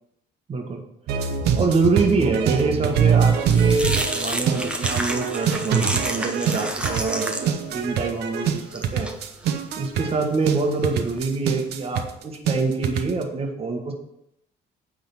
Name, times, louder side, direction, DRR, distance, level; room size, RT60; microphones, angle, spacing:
voice 1, 0.5-0.8 1.6-9.1 9.8-13.9, right 3 dB, 35° right, 3 dB, 1.5 m, -25 dB
sound 1, 1.1-13.2, right 7 dB, 75° right, 0.9 m, -24 dB
sound 2, 2.9-11.2, right 1 dB, 5° right, 1.0 m, -31 dB
9.0 x 3.9 x 5.9 m, 0.81 s
cardioid pair, 110°, 17 cm